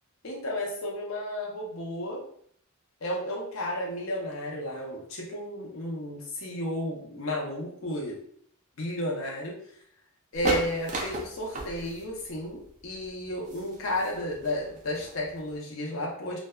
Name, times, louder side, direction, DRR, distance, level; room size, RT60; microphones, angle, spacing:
voice 1, 0.2-2.2 3.0-8.2 8.8-9.6 10.3-16.4, left 1 dB, 65° left, -2 dB, 0.6 m, -33 dB
sound 1, 10.3-15.6, right 2 dB, 35° right, 0.4 m, -35 dB
2.6 x 2.2 x 2.2 m, 0.65 s
head